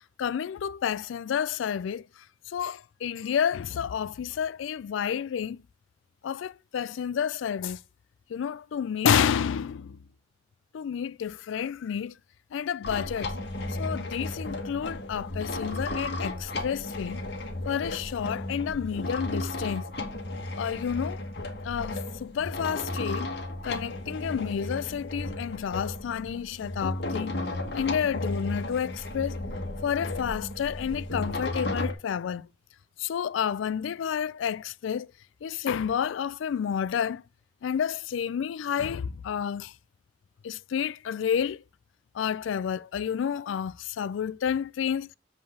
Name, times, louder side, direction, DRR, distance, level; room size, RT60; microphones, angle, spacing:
voice 1, 0.2-2.0 2.5-5.6 6.2-7.8 8.3-10.0 10.7-12.1 12.5-13.3 13.8-17.2 17.7-19.9 20.6-21.2 21.6-23.3 23.6-27.4 27.7-29.4 29.8-32.5 33.0-35.1 35.4-37.2 37.6-39.7 40.4-41.6 42.1-45.1, left 8 dB, 90° left, 0.3 m, -30 dB
sound 1, 12.8-31.9, left 1 dB, 60° left, 1.3 m, -34 dB
7.9 x 3.5 x 6.4 m
head